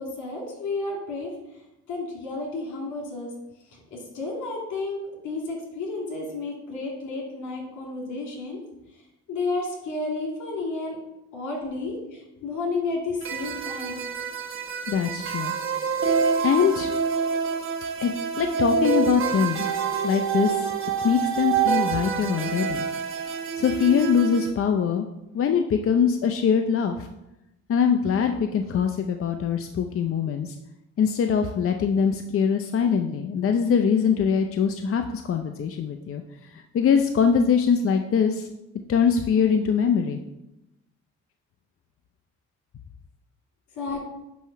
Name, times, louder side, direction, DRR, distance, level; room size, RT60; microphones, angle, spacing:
voice 1, 0.0-1.3 1.9-3.3 3.7-8.6 9.3-11.0 11.3-14.0 43.7-44.0, left 3 dB, 75° left, -1 dB, 2.6 m, -31 dB
sound 1, 13.2-24.5, right 6 dB, 45° right, 1.1 m, -27 dB
voice 2, 14.9-15.5 16.4-16.9 18.0-19.6 20.0-20.7 21.0-22.9 23.6-25.1 25.3-27.1 27.7-30.5 31.0-36.2 36.5-38.5 38.9-40.2, left 7 dB, 45° left, 6 dB, 0.6 m, -23 dB
9.2 x 3.1 x 5.7 m, 0.91 s
cardioid pair, 90°, 30 cm